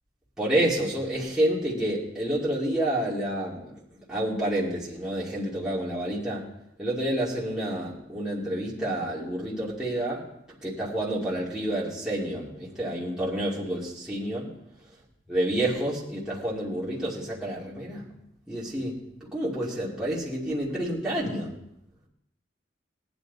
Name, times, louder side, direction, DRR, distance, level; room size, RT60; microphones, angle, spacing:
voice 1, 0.4-3.6 4.1-6.4 6.8-10.2 10.6-14.5 15.3-18.0 18.5-19.0 19.3-21.5, right 1 dB, 5° right, -8 dB, 2.6 m, -29 dB
18.5 x 9.7 x 4.1 m, 0.80 s
head